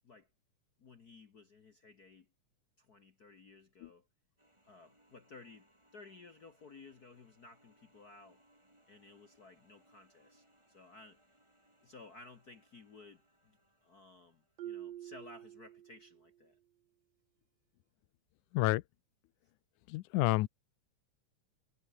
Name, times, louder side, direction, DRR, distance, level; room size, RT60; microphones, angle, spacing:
voice 1, 0.8-2.3 2.8-4.1 4.7-5.7 5.9-8.4 8.9-11.2 11.8-13.6 13.8-16.6, left 3 dB, 50° left, 1.2 m, -56 dB
sound 1, 4.4-15.2, right 1 dB, 10° right, 6.8 m, -70 dB
Marimba xylophone, 14.6-16.3, right 12 dB, 65° right, 2.1 m, -47 dB
voice 2, 19.9-20.5, left 19 dB, 85° left, 2.1 m, -29 dB
omnidirectional pair, 3.5 m